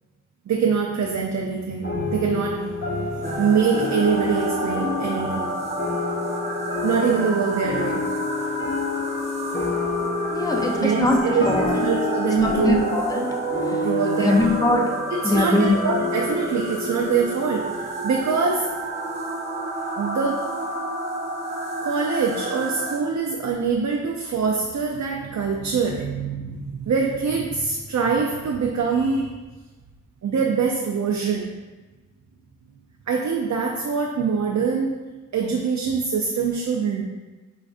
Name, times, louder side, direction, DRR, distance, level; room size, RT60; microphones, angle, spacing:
voice 1, 0.5-5.6 6.8-8.1 10.8-12.9 13.7-14.5 15.1-18.7 20.0-20.4 21.8-29.3 30.2-31.5 33.1-34.9 35.3-37.0, right 5 dB, 65° right, 0 dB, 0.4 m, -24 dB
sound 1, 1.8-18.6, left 4 dB, 40° left, 1.2 m, -30 dB
sound 2, 3.2-23.0, right 2 dB, 20° right, 0.7 m, -30 dB
voice 2, 10.3-11.8 12.4-13.3 14.2-14.9 15.2-15.8, left 2 dB, 10° left, 1 dB, 0.5 m, -21 dB
4.9 x 2.4 x 2.4 m, 1.2 s
cardioid pair, 50°, 31 cm